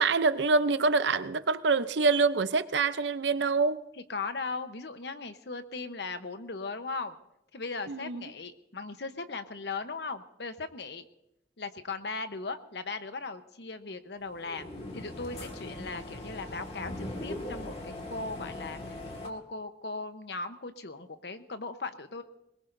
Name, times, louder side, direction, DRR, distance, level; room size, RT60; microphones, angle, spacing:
voice 1, 0.0-3.8 7.9-8.3, right 4 dB, 75° right, 0.7 m, -26 dB
voice 2, 4.1-7.2 7.5-11.0 11.6-14.7 14.9-19.0 19.2-22.2, left 3 dB, 65° left, 1.0 m, -38 dB
sound 1, 14.2-19.3, left 1 dB, 35° left, 1.9 m, -40 dB
22.0 x 20.5 x 2.7 m
head